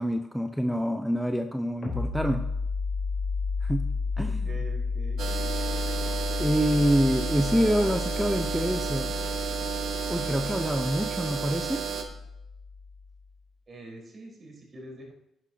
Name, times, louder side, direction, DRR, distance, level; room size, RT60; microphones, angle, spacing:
voice 1, 0.0-2.4 3.6-3.9 4.2-4.4 6.4-9.1 10.1-11.8, equal, 5° right, 5 dB, 0.8 m, -26 dB
sound 1, 1.8-13.2, left 4 dB, 45° left, 4.0 m, -32 dB
voice 2, 4.2-5.5 13.7-15.1, right 1 dB, 45° right, -1 dB, 4.6 m, -45 dB
sound 2, 5.2-12.0, right 7 dB, 75° right, 1.4 m, -32 dB
11.0 x 11.0 x 2.9 m, 0.83 s
supercardioid pair, 60°, 0 cm